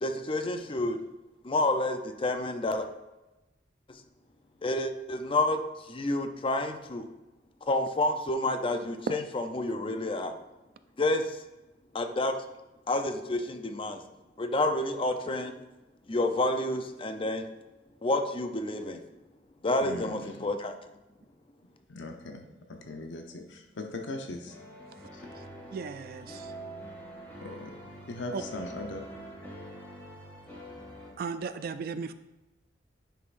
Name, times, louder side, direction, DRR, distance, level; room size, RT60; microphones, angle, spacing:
voice 1, 0.0-1.0 1.4-2.9 4.6-5.6 5.9-7.0 7.7-10.4 11.0-11.4 11.9-12.4 12.9-14.0 14.4-15.6 16.1-17.5 18.0-19.0 19.6-20.7, left 2 dB, 30° left, 0.6 m, -29 dB
voice 2, 19.8-20.4 21.9-22.4 22.7-24.5 27.4-27.7 28.1-29.0, left 2 dB, 85° left, 0.8 m, -39 dB
sound 1, 24.5-31.1, right 1 dB, 10° left, 1.9 m, -45 dB
voice 3, 25.7-26.5 28.3-28.4 31.2-32.1, right 5 dB, 55° right, 0.3 m, -35 dB
10.0 x 5.6 x 2.6 m
head